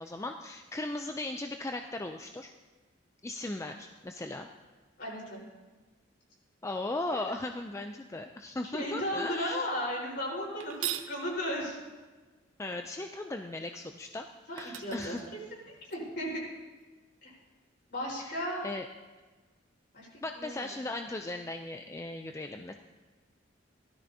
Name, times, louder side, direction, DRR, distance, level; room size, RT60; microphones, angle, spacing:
voice 1, 0.0-2.5 3.2-4.5 6.6-9.7 12.6-14.3 14.5-15.2 18.2-18.3 18.6-18.8 20.2-22.7, left 2 dB, 15° left, 5 dB, 0.4 m, -37 dB
voice 2, 5.0-5.4 8.7-11.8 14.5-15.2 15.9-16.4 17.2-17.3 17.9-18.7 19.9-20.1 20.3-20.7, equal, 55° left, -4 dB, 4.2 m, -35 dB
sound 1, 10.6-11.2 14.1-14.2 14.6-16.0, right 12 dB, 85° right, 0.6 m, -39 dB
17.0 x 13.0 x 2.7 m, 1.3 s
head